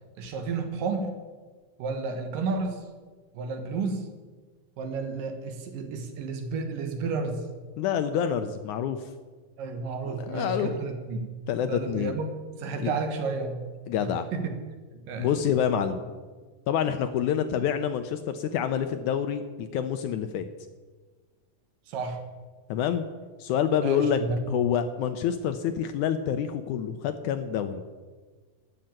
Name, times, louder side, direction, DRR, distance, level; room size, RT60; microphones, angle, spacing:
voice 1, 0.2-1.1 1.8-2.8 3.3-4.1 4.8-7.5 9.6-11.3 11.7-12.3 12.6-13.6 14.0-14.6 14.9-15.4 17.5-17.6 21.9-22.2 23.8-24.4, right 4 dB, 75° right, 6 dB, 3.0 m, -31 dB
voice 2, 7.8-9.0 10.1-10.7 11.5-12.1 12.8-12.9 13.9-14.3 15.2-16.1 16.7-20.5 22.7-23.1 23.4-24.2 24.5-27.8, left 8 dB, 75° left, 9 dB, 1.8 m, -27 dB
13.5 x 6.5 x 8.8 m, 1.4 s
omnidirectional pair, 4.0 m